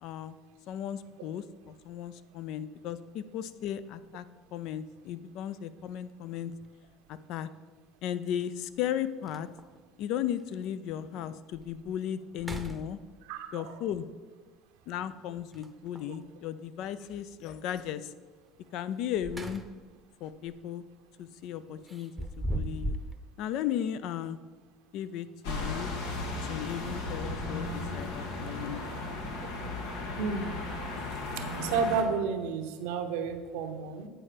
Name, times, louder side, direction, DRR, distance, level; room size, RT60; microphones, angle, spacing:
voice 1, 0.0-0.4 0.7-4.3 4.5-6.5 7.1-7.5 8.0-9.5 10.0-13.0 13.5-14.1 14.9-18.1 18.7-19.6 20.2-20.8 21.2-22.1 22.4-23.0 23.4-24.4 24.9-25.9 26.4-29.5 30.0-30.1, left 10 dB, 65° left, 14 dB, 0.4 m, -36 dB
sound 1, 6.5-6.7 8.4-8.5 8.9-9.0 9.3-9.8 10.4-10.5 11.0-11.1 11.5-11.9 12.3-13.4 15.5-16.2 18.9-20.0 20.3-20.6 21.9-23.2, right 1 dB, 10° right, 0.7 m, -38 dB
voice 2, 13.3-13.7 30.2-30.5 31.4-34.1, right 5 dB, 80° right, 6 dB, 0.8 m, -31 dB
sound 2, 25.4-32.0, left 2 dB, 80° left, 1.3 m, -35 dB
8.9 x 4.4 x 5.0 m, 1.4 s
supercardioid pair, 95°, 0 cm